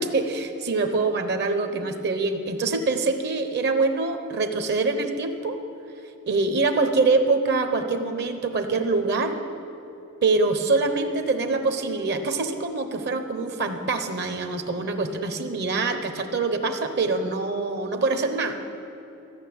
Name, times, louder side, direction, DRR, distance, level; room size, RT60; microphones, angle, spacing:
voice 1, 0.0-5.6 6.3-9.3 10.2-18.6, right 3 dB, 50° right, 7 dB, 0.9 m, -24 dB
14.5 x 6.5 x 8.6 m, 2.9 s
head